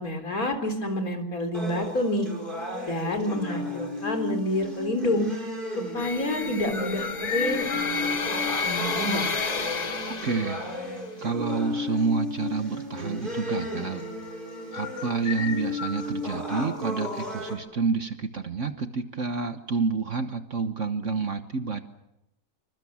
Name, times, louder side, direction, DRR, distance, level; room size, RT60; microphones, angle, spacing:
voice 1, 0.0-2.3 2.9-5.3 5.8-8.2 8.6-9.3, left 1 dB, 65° left, 5 dB, 4.2 m, -28 dB
sound 1, 1.5-17.5, left 2 dB, 30° right, 4.9 m, -34 dB
sound 2, 6.0-11.0, left 4 dB, 30° left, 1.0 m, -31 dB
voice 2, 10.1-14.0 14.7-21.8, right 4 dB, 55° right, 8 dB, 1.4 m, -29 dB
27.0 x 25.0 x 7.2 m, 0.89 s
omnidirectional pair, 1.7 m